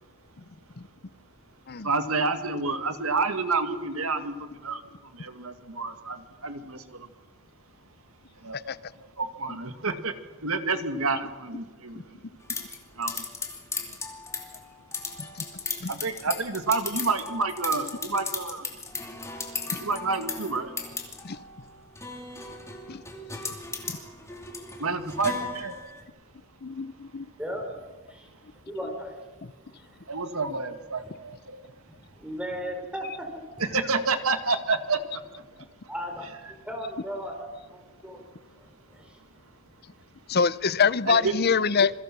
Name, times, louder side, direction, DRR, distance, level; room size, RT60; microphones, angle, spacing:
voice 1, 1.8-7.1 8.4-10.1 10.4-12.2 13.0-13.2 15.9-18.7 19.8-20.7 24.8-25.8 30.1-31.6 33.7-35.4 41.1-41.3, right 4 dB, 70° right, 8 dB, 2.0 m, -29 dB
sound 1, 12.5-26.0, left 4 dB, 15° left, 2.6 m, -37 dB
voice 2, 26.6-27.3 40.3-41.9, left 5 dB, 45° left, 17 dB, 0.6 m, -24 dB
voice 3, 27.4-28.3 28.6-29.2 32.2-33.8 35.9-36.3 36.6-37.4 37.7-38.2 38.6-39.1, equal, 5° right, 3 dB, 4.2 m, -36 dB
27.0 x 23.0 x 6.0 m, 1.3 s
head